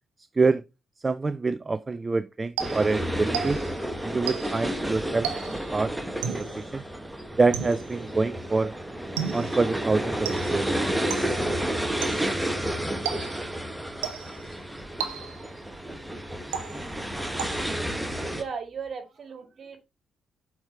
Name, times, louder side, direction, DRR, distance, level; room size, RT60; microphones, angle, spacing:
voice 1, 1.0-3.6 4.0-5.3 5.7-5.9 6.2-6.8 7.4-8.7 9.3-10.7, right 3 dB, 30° right, 0.4 m, -26 dB
sound 1, 2.6-18.4, right 1 dB, 5° right, 1.6 m, -31 dB
sound 2, 2.6-3.8 4.3-4.7 5.2-5.7 6.2-6.6 7.5-8.0 9.2-9.6 10.3-10.7 11.1-11.5 12.0-12.4 13.1-13.6 14.0-14.5 15.0-15.6 16.5-17.0 17.4-17.9, right 8 dB, 85° right, 0.8 m, -34 dB
voice 2, 18.3-19.8, right 5 dB, 55° right, 2.0 m, -36 dB
7.2 x 4.8 x 4.5 m
hypercardioid pair, 45°, 0 cm